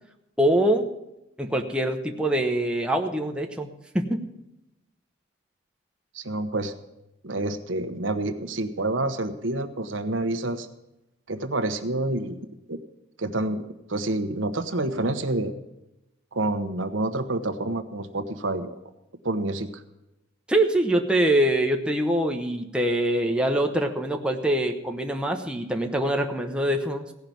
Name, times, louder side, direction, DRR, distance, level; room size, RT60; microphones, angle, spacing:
voice 1, 0.4-0.9 1.4-4.2 20.5-27.1, right 1 dB, 5° right, 3 dB, 0.8 m, -24 dB
voice 2, 6.1-6.7 7.2-10.7 11.3-12.8 13.2-13.6 13.9-15.5 16.3-18.8 19.2-19.8, right 2 dB, 75° right, 8 dB, 1.0 m, -28 dB
16.5 x 5.7 x 9.2 m, 0.92 s
head